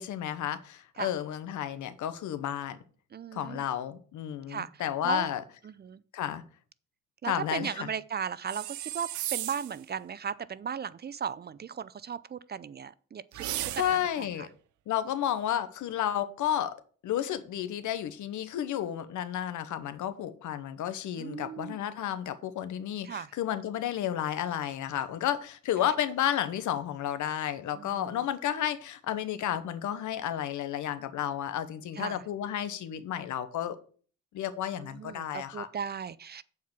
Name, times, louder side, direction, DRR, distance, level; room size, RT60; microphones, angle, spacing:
voice 1, 0.0-2.8 3.3-5.4 6.1-6.4 7.2-7.9 13.8-14.5 14.9-16.8 17.0-33.8 34.3-35.7, left 10 dB, 75° left, 1.0 m, -32 dB
voice 2, 3.1-3.7 4.5-5.3 5.6-6.0 7.2-14.5 21.2-21.8 23.0-23.3 25.8-25.9 27.8-28.2 31.9-32.2 34.7-36.4, right 7 dB, 35° right, 0.5 m, -37 dB
sound 1, 8.5-9.8 13.3-14.2, right 14 dB, 75° right, 0.7 m, -35 dB
7.9 x 4.7 x 7.2 m
cardioid pair, 90°, 30 cm